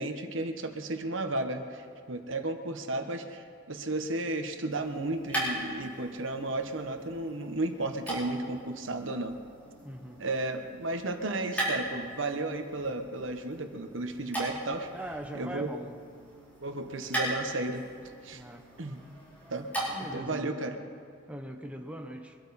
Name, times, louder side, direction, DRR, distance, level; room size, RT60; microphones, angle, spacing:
voice 1, 0.0-9.4 10.2-14.9 15.3-15.7 16.6-17.9 18.2-18.4 18.8-19.0 19.5-19.7 20.1-20.8, right 2 dB, 80° right, 6 dB, 1.3 m, -33 dB
sound 1, 4.6-20.3, right 1 dB, 10° left, 5.2 m, -39 dB
voice 2, 9.8-10.2 14.9-16.0 18.3-18.7 19.9-20.6 21.3-22.4, right 1 dB, 5° right, 3 dB, 1.0 m, -41 dB
23.5 x 12.5 x 4.3 m, 2.4 s
head